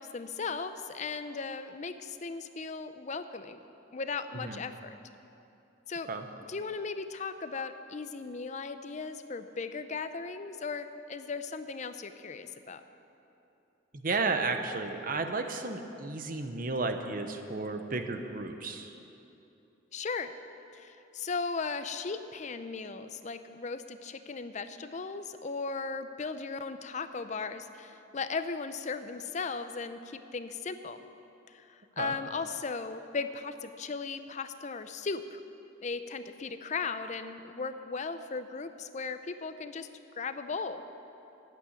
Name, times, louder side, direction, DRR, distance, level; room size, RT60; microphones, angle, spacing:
voice 1, 0.0-3.6 3.9-5.0 5.9-6.1 6.5-12.8 19.9-20.3 20.7-31.1 31.5-35.4 35.8-39.9 40.1-40.8, left 4 dB, 35° left, 10 dB, 0.5 m, -37 dB
voice 2, 14.0-18.9 32.0-32.2, right 3 dB, 45° right, 7 dB, 0.7 m, -33 dB
9.2 x 8.6 x 9.6 m, 2.9 s
head